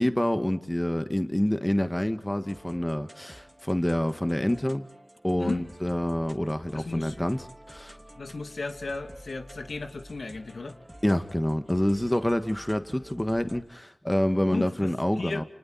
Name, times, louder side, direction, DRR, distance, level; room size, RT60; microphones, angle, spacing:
voice 1, 0.0-4.9 5.2-8.0 11.0-15.4, left 1 dB, 15° left, 9 dB, 1.6 m, -27 dB
sound 1, 2.4-13.6, right 1 dB, 10° right, 2.8 m, -49 dB
voice 2, 6.7-7.1 8.2-10.8 14.5-15.4, left 3 dB, 75° left, 6 dB, 2.4 m, -35 dB
30.0 x 29.5 x 4.3 m, 0.73 s
wide cardioid pair, 65°, 0 cm